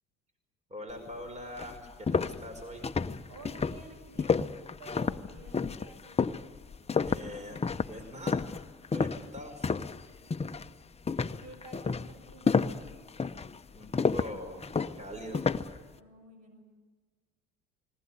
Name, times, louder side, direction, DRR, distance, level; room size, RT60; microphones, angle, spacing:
voice 1, 0.7-2.8 7.1-7.6 7.9-8.4 8.9-9.7 13.7-14.6 14.9-15.4, equal, 20° right, 5 dB, 5.2 m, -42 dB
sound 1, 1.1-1.2 1.6-10.0 10.3-10.7 11.1-15.8, left 5 dB, 20° left, 0.8 m, -30 dB
voice 2, 3.3-6.1 10.2-10.6 11.4-12.6 16.0-16.6, right 2 dB, 60° right, 6 dB, 6.6 m, -51 dB
20.0 x 19.5 x 9.8 m, 1.4 s
supercardioid pair, 75°, 31 cm